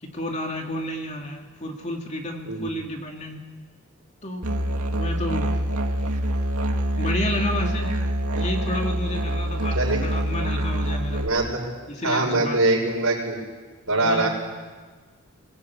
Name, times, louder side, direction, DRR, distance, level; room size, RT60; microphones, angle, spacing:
voice 1, 0.0-3.4 4.2-5.6 7.0-8.0 8.3-9.8 10.0-11.3 11.9-12.6 13.9-14.3, left 1 dB, 30° left, 2 dB, 2.5 m, -31 dB
Musical instrument, 4.4-11.3, equal, 85° right, 2.3 m, -25 dB
voice 2, 9.7-10.0 11.2-11.7 12.0-13.4 13.9-14.3, right 2 dB, 70° right, 0 dB, 6.1 m, -23 dB
22.5 x 20.5 x 8.5 m, 1.4 s
head